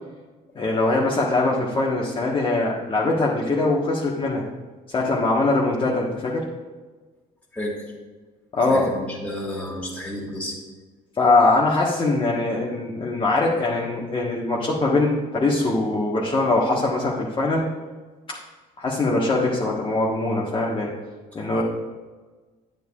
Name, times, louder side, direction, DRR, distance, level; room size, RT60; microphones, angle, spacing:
voice 1, 0.5-4.5 4.9-6.5 8.5-8.9 11.2-17.6 18.8-20.9 21.3-21.6, left 2 dB, 30° left, -4 dB, 1.3 m, -22 dB
voice 2, 8.7-10.6 21.5-21.6, left 1 dB, 5° left, -4 dB, 2.1 m, -31 dB
10.5 x 9.1 x 2.4 m, 1.3 s
cardioid pair, 110°, 17 cm